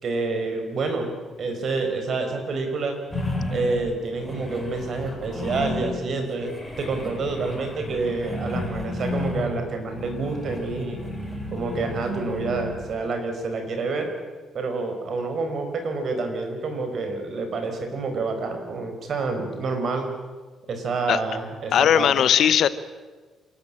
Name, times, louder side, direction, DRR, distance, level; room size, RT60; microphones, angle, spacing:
voice 1, 0.0-3.0 3.5-6.5 6.8-11.0 11.5-14.1 14.5-20.1 20.7-22.1, right 3 dB, 55° right, 5 dB, 4.9 m, -28 dB
sound 1, 3.1-6.1 6.4-12.9, left 1 dB, 5° left, 6.3 m, -32 dB
voice 2, 21.7-22.7, left 9 dB, 70° left, 15 dB, 1.0 m, -18 dB
27.5 x 13.0 x 8.9 m, 1.4 s
cardioid pair, 90°, 0 cm